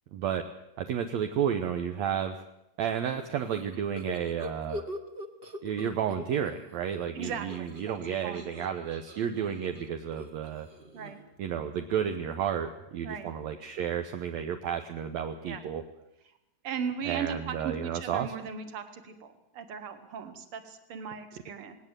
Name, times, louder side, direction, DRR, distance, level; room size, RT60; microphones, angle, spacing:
voice 1, 0.1-0.4 0.8-2.4 2.8-4.8 5.6-10.7 11.4-15.8 17.1-18.3, right 8 dB, 70° right, 6 dB, 2.1 m, -32 dB
sound 1, 3.1-6.6 6.9-11.4, left 1 dB, 35° right, 0.9 m, -43 dB
voice 2, 7.1-8.0 8.2-8.4 9.4-9.5 10.9-11.3 13.0-13.3 15.4-15.6 16.6-21.8, right 6 dB, 50° right, 9 dB, 2.4 m, -37 dB
19.0 x 18.5 x 8.1 m, 0.86 s
omnidirectional pair, 3.5 m